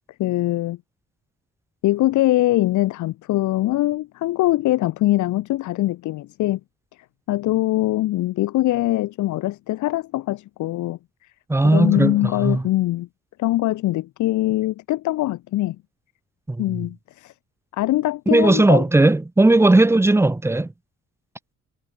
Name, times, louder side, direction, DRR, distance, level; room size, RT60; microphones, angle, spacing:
voice 1, 0.2-0.8 1.8-6.6 7.3-11.0 11.7-13.1 13.4-15.8 16.6-17.3 17.7-18.8, left 16 dB, 75° left, 0.5 m, -22 dB
voice 2, 11.5-12.7 16.5-16.9 18.3-20.7, right 2 dB, 10° right, 0.6 m, -17 dB
wide cardioid pair, 160°, 30 cm